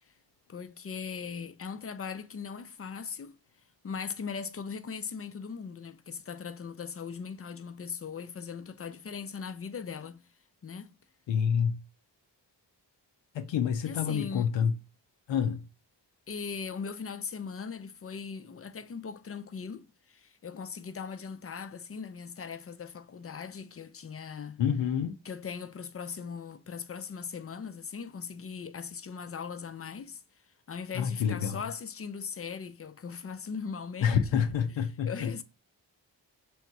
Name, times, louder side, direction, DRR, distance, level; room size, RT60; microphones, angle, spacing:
voice 1, 0.5-3.4 3.8-10.2 10.6-10.9 13.8-14.5 16.3-24.6 25.2-30.2 30.7-34.4 35.0-35.4, left 6 dB, 30° left, 0.5 m, -39 dB
voice 2, 11.3-11.8 13.3-14.7 15.3-15.6 24.6-25.1 30.9-31.6 34.0-35.4, left 7 dB, 85° left, 0.6 m, -28 dB
3.5 x 2.9 x 4.5 m
cardioid pair, 50°, 44 cm